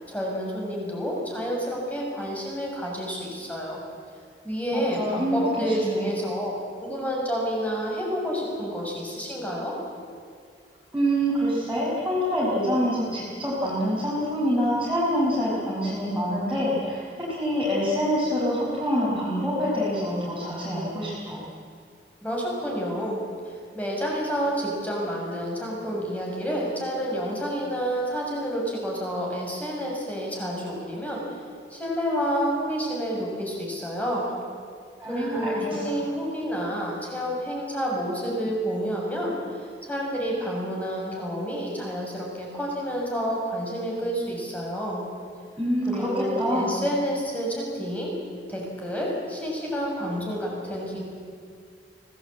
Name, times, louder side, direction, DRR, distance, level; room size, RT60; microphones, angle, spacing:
voice 1, 0.1-3.8 4.4-6.5 6.8-9.8 22.2-31.2 31.7-34.3 35.1-45.0 45.9-48.1 48.5-51.0, equal, 10° left, -2 dB, 6.8 m, -29 dB
voice 2, 4.7-6.1 10.9-21.4 35.0-35.9 45.6-46.8, equal, 5° right, -9 dB, 5.7 m, -26 dB
25.0 x 18.5 x 8.8 m, 2.2 s
head